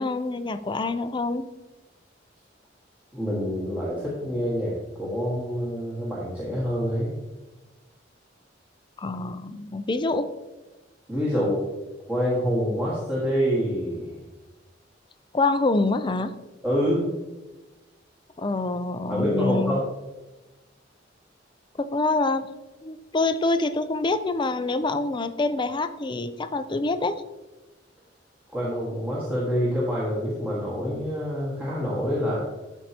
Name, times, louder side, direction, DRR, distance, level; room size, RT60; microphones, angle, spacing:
voice 1, 0.0-1.5 9.0-10.3 15.3-16.3 18.4-19.8 21.8-22.5 22.8-27.2, left 3 dB, 25° left, 11 dB, 0.4 m, -26 dB
voice 2, 3.1-7.1 11.1-11.6 12.1-14.1 16.6-17.1 19.1-19.8 28.5-32.4, equal, 10° right, -8 dB, 1.7 m, -26 dB
13.0 x 4.6 x 2.9 m, 1.1 s
head